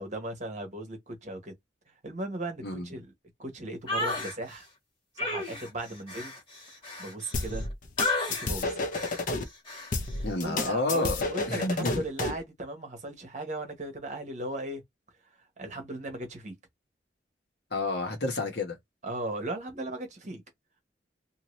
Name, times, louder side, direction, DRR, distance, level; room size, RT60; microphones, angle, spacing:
voice 1, 0.0-1.5 2.0-3.1 3.4-4.7 5.2-6.3 7.0-7.7 8.4-8.8 10.4-14.8 15.6-16.6 19.0-20.4, right 1 dB, 40° right, 1.1 m, -37 dB
sound 1, 3.9-4.3 5.2-7.6 8.0-8.5 8.9-9.2 9.7-9.9, left 2 dB, 30° left, 1.8 m, -32 dB
sound 2, 7.3-9.4 9.9-12.4, left 3 dB, 45° left, 0.6 m, -31 dB
voice 2, 10.2-11.1 11.5-12.0 17.7-18.8, left 2 dB, 65° left, 1.2 m, -29 dB
2.8 x 2.6 x 3.1 m
head